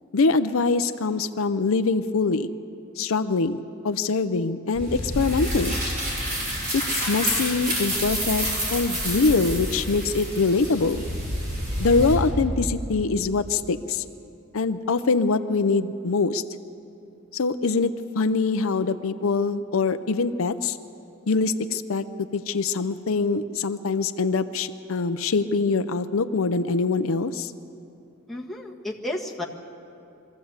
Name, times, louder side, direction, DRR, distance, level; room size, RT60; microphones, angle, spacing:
voice 1, 0.1-2.5 3.0-3.6 3.8-5.8 6.7-11.0 11.8-14.0 14.5-16.4 17.3-20.8 21.3-22.0 22.3-27.5, left 4 dB, 70° left, 10 dB, 0.6 m, -24 dB
sound 1, 4.7-12.1, equal, 40° right, 5.9 m, -28 dB
voice 2, 28.3-29.4, left 1 dB, ahead, -2 dB, 1.4 m, -32 dB
23.0 x 14.5 x 8.0 m, 2.7 s
head